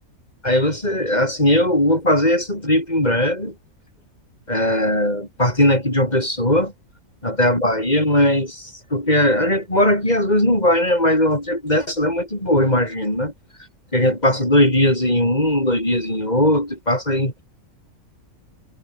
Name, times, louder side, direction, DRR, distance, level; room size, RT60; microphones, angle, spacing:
voice 1, 0.4-3.5 4.5-6.7 7.2-13.3 13.9-17.4, left 1 dB, 25° left, 8.3 m, -19 dB
omnidirectional pair, 1.5 m